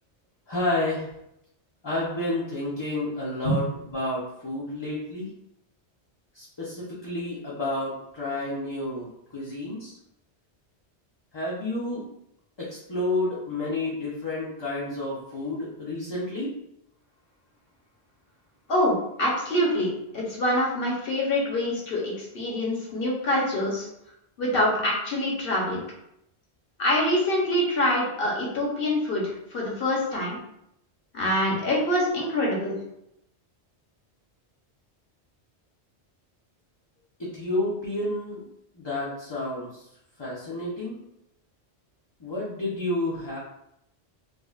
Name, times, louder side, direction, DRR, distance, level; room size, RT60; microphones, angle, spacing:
voice 1, 0.5-1.1 1.8-5.3 6.3-10.0 11.3-12.1 12.6-16.6 37.2-38.4 38.7-39.9 40.2-41.0 42.2-43.4, left 2 dB, 30° left, -7 dB, 0.7 m, -30 dB
voice 2, 18.7-23.9 24.4-25.8 26.8-30.4 31.1-32.8, left 1 dB, 60° left, -3 dB, 1.2 m, -25 dB
4.8 x 2.3 x 2.4 m, 0.79 s
omnidirectional pair, 1.1 m